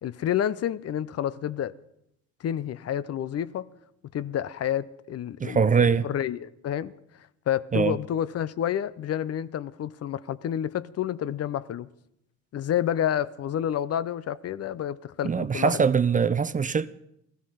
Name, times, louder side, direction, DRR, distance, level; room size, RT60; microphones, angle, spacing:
voice 1, 0.0-1.7 2.4-3.7 4.1-6.9 7.5-11.9 12.5-15.8, left 10 dB, 55° left, 0.6 m, -29 dB
voice 2, 5.4-6.1 7.7-8.0 15.2-16.9, right 6 dB, 25° right, 0.5 m, -22 dB
15.5 x 13.0 x 5.6 m
cardioid pair, 90°, 30 cm